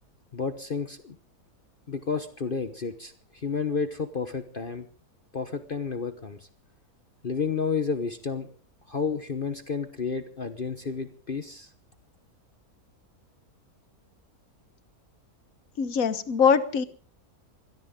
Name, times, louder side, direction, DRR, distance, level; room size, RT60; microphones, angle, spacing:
voice 1, 0.3-1.2 1.9-4.9 5.3-6.5 7.2-8.5 8.9-11.7, left 5 dB, 40° left, 9 dB, 1.1 m, -31 dB
voice 2, 15.8-16.8, left 6 dB, 65° left, 13 dB, 1.6 m, -22 dB
22.5 x 17.0 x 3.7 m, 0.42 s
omnidirectional pair, 1.6 m